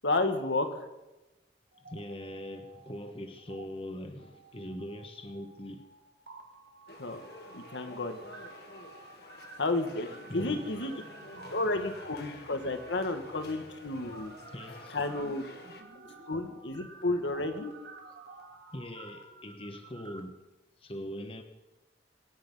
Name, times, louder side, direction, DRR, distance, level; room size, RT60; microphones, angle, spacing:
voice 1, 0.0-0.9 7.0-7.2 7.5-8.2 9.6-10.1 10.3-10.9 11.5-14.3 14.9-15.4 16.3-17.7, left 2 dB, 90° left, 1.6 m, -31 dB
sound 1, 1.7-3.1 3.4-3.6 4.2-20.2, right 3 dB, 75° right, 2.1 m, -51 dB
voice 2, 1.8-5.8 10.3-10.7 11.5-11.6 14.5-15.0 16.1-16.2 18.7-20.3 20.8-21.4, left 1 dB, 30° left, 1.2 m, -41 dB
sound 2, 6.9-15.8, left 2 dB, 60° left, 1.7 m, -50 dB
24.0 x 10.0 x 5.6 m
head